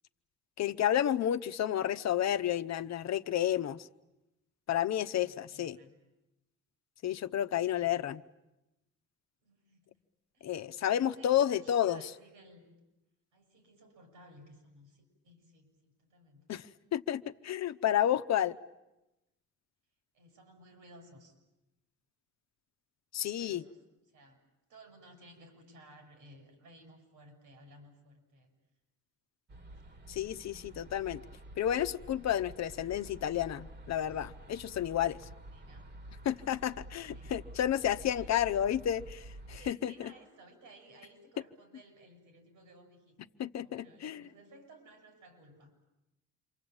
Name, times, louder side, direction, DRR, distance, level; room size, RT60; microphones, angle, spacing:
voice 1, 0.6-3.9 4.7-5.8 7.0-8.2 10.4-12.0 16.5-16.7 16.9-18.6 23.1-23.6 30.1-31.2 31.6-35.2 36.2-40.1 43.4-44.2, left 11 dB, 60° left, 11 dB, 0.9 m, -31 dB
voice 2, 5.1-5.9 7.7-7.9 9.4-10.0 10.3-12.7 13.3-16.5 20.1-21.3 23.2-23.8 24.1-24.4 24.7-28.5 29.8-29.9 35.5-35.9 36.3-36.9 37.1-37.3 38.1-38.4 39.5-43.2 43.6-45.9, right 1 dB, 90° right, 5 dB, 7.8 m, -58 dB
sound 1, 29.5-39.7, right 1 dB, 35° right, 1.7 m, -50 dB
28.0 x 24.0 x 8.8 m, 0.94 s
cardioid pair, 90°, 30 cm